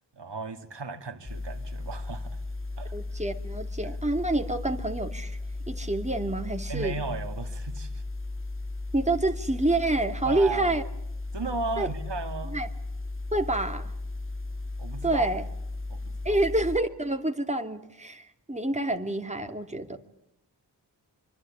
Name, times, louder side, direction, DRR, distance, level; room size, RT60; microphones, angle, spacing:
voice 1, 0.1-2.4 2.8-2.9 6.7-8.0 10.2-10.7 11.3-12.6 14.8-15.3 15.9-16.4, right 4 dB, 80° right, 2.4 m, -35 dB
sound 1, 1.2-16.8, left 2 dB, 30° left, 2.6 m, -35 dB
voice 2, 2.9-5.4 5.7-7.0 8.9-10.8 11.8-11.9 12.4-12.7 13.3-13.9 15.0-15.4 16.2-20.0, right 2 dB, 15° right, 2.7 m, -27 dB
25.5 x 25.0 x 8.8 m
wide cardioid pair, 60°, 41 cm